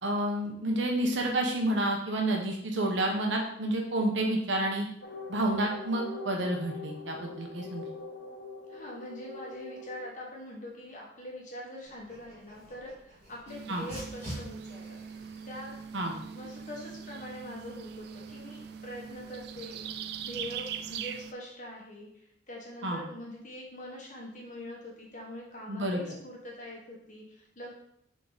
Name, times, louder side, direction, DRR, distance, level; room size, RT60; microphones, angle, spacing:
voice 1, 0.0-4.9 5.3-7.8 13.7-13.9 15.9-16.1 22.8-23.0 25.7-26.0, right 1 dB, 80° right, 1 dB, 1.0 m, -29 dB
sound 1, 5.0-10.1, left 2 dB, 75° left, 1.0 m, -43 dB
voice 2, 8.7-15.0 15.4-15.8 16.3-19.9 20.2-27.7, left 1 dB, 40° left, -2 dB, 1.4 m, -43 dB
Dog, 11.8-20.9, equal, 35° right, 2.1 m, -50 dB
sound 2, 13.5-21.3, right 8 dB, 60° right, 0.3 m, -42 dB
6.6 x 3.8 x 4.0 m, 0.75 s
head